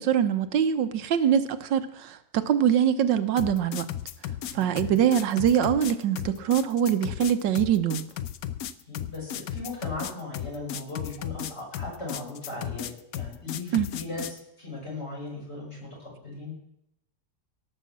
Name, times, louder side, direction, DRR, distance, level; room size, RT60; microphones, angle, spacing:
voice 1, 0.0-3.9 4.5-8.0 13.7-13.9, right 9 dB, 80° right, 11 dB, 1.5 m, -23 dB
sound 1, 3.4-14.4, left 10 dB, 65° left, 1.0 m, -35 dB
voice 2, 4.5-4.9 8.9-16.5, left 2 dB, 35° left, -3 dB, 6.3 m, -38 dB
17.5 x 6.6 x 7.3 m, 0.77 s
omnidirectional pair, 1.9 m